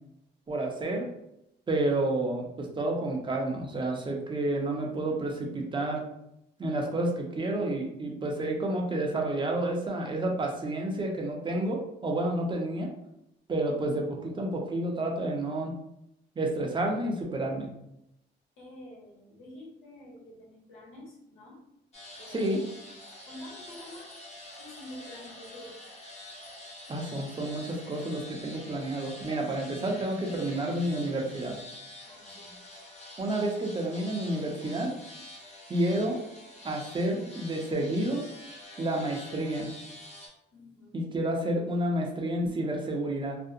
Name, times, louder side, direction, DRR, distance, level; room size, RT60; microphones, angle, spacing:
voice 1, 0.5-1.1 1.7-6.0 6.6-12.9 13.5-15.7 16.4-17.7 22.3-22.6 26.9-31.6 33.2-34.9 35.7-36.2 36.6-38.3 38.8-39.7 40.9-43.4, right 1 dB, 25° right, 0 dB, 0.6 m, -30 dB
voice 2, 18.6-21.6 22.2-22.5 23.3-24.2 24.6-25.8 32.0-32.6 40.5-41.0, left 1 dB, 90° left, -5 dB, 1.2 m, -48 dB
sound 1, 21.9-40.3, left 1 dB, 35° left, 0.9 m, -47 dB
2.5 x 2.0 x 2.7 m, 0.82 s
cardioid pair, 90°, 20 cm